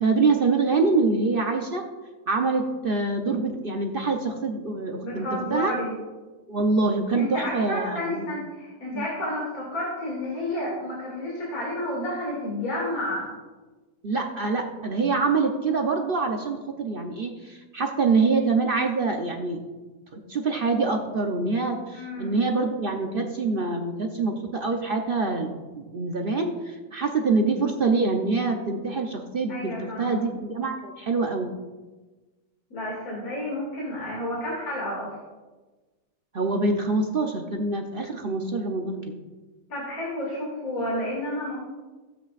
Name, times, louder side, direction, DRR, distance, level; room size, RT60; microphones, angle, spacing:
voice 1, 0.0-1.9 2.3-5.7 6.5-8.3 8.9-9.1 14.0-19.6 20.1-31.5 36.3-39.0, right 3 dB, 50° right, 2 dB, 0.7 m, -25 dB
voice 2, 5.0-5.9 7.1-13.3 21.9-22.4 29.5-30.2 32.7-35.1 39.7-41.5, left 1 dB, 60° left, -5 dB, 2.8 m, -31 dB
15.5 x 8.3 x 2.5 m, 1.2 s
omnidirectional pair, 1.8 m